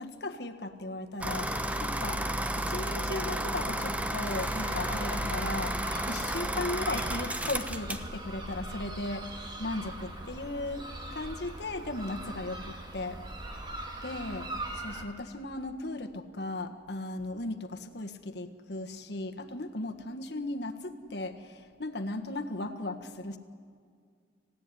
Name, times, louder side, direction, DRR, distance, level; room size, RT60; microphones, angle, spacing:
voice 1, 0.0-2.2 2.5-5.8 6.1-13.2 14.0-14.4 14.8-23.4, left 2 dB, 70° left, 6 dB, 1.6 m, -37 dB
sound 1, 1.2-8.1, right 1 dB, 10° right, 0.9 m, -32 dB
sound 2, 4.3-15.0, right 1 dB, 25° right, 2.1 m, -41 dB
28.0 x 16.0 x 9.8 m, 2.1 s
head